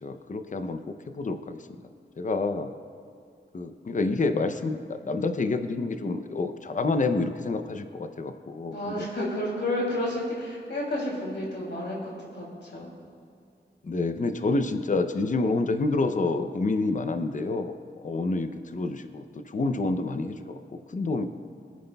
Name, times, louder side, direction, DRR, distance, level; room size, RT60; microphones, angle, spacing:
voice 1, 0.0-1.6 2.2-2.7 3.5-9.0 13.8-17.7 18.0-20.6 20.9-21.3, left 3 dB, 45° left, 8 dB, 0.6 m, -28 dB
voice 2, 8.7-12.9, left 1 dB, 70° left, -4 dB, 2.8 m, -31 dB
22.5 x 9.3 x 2.3 m, 2.4 s
wide cardioid pair, 105°, 19 cm